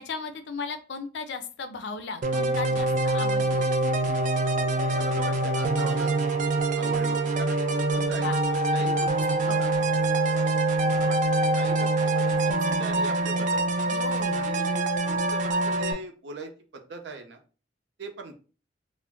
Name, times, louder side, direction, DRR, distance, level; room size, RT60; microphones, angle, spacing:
voice 1, 0.0-3.6 8.0-8.4 8.8-8.9 9.4-9.6 13.9-14.5, left 4 dB, 75° left, 9 dB, 0.4 m, -36 dB
sound 1, 2.2-15.9, right 2 dB, 45° right, 0.4 m, -25 dB
Wind instrument woodwind instrument, 4.2-8.6, left 2 dB, 15° left, 0.5 m, -44 dB
voice 2, 4.9-6.1 6.8-9.7 10.1-10.5 10.8-11.2 11.6-13.6 14.3-17.4 18.0-18.3, right 3 dB, 85° right, 4 dB, 0.6 m, -40 dB
2.4 x 2.1 x 3.5 m, 0.36 s
head